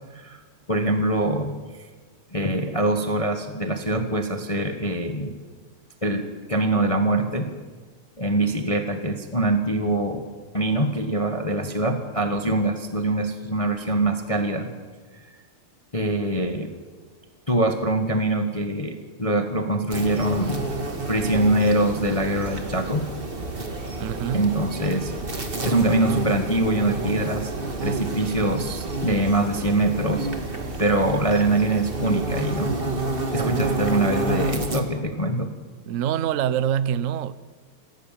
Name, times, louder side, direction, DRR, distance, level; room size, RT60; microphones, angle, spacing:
voice 1, 0.7-1.5 2.3-5.3 6.0-7.5 8.2-10.2 10.5-14.7 15.1-15.3 15.9-16.7 17.5-20.7 21.1-23.1 24.3-25.1 25.6-27.5 27.8-30.3 30.8-32.7 33.3-35.5, right 1 dB, 20° left, 1.2 m, -23 dB
sound 1, 19.9-34.8, right 2 dB, 25° right, 1.9 m, -29 dB
voice 2, 24.0-24.5 33.3-33.6 35.9-37.3, right 9 dB, 80° right, 0.7 m, -25 dB
27.0 x 15.5 x 7.5 m
omnidirectional pair, 2.4 m